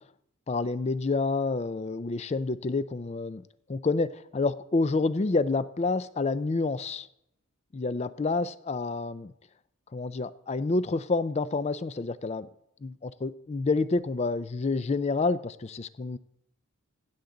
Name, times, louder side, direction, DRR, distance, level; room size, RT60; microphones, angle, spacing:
voice 1, 0.5-3.4 3.7-7.1 7.7-9.3 9.9-12.5 12.8-16.2, left 3 dB, 30° left, 15 dB, 0.4 m, -28 dB
16.0 x 7.2 x 3.8 m, 0.77 s
head